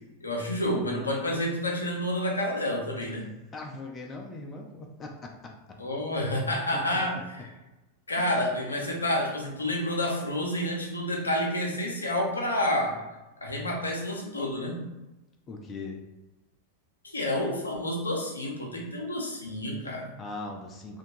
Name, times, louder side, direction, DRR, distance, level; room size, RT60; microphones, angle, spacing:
voice 1, 0.2-3.2 5.8-7.5 8.1-13.0 13.4-14.8 17.0-20.1, left 1 dB, 80° left, 0 dB, 0.5 m, -29 dB
voice 2, 3.5-5.8 6.2-6.3 8.1-8.3 15.5-16.0 19.8-21.0, left 3 dB, 25° left, 1 dB, 0.4 m, -41 dB
2.8 x 2.2 x 2.7 m, 1.0 s
figure-of-eight pair, 90°, 0 cm